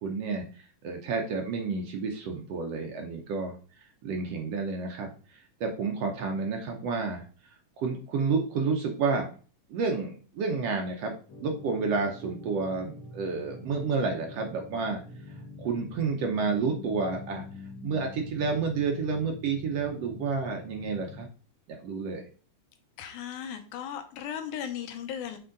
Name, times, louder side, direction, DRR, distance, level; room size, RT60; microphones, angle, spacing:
voice 1, 0.0-3.5 4.0-7.2 7.8-9.3 9.7-11.1 11.4-15.0 15.6-17.4 17.8-21.3 21.7-22.2, right 4 dB, 70° right, 3 dB, 1.6 m, -30 dB
sound 1, 11.3-21.3, left 2 dB, 50° left, 1.8 m, -45 dB
voice 2, 23.0-25.4, left 9 dB, 80° left, 7 dB, 2.3 m, -36 dB
6.9 x 3.6 x 3.8 m, 0.39 s
omnidirectional pair, 3.5 m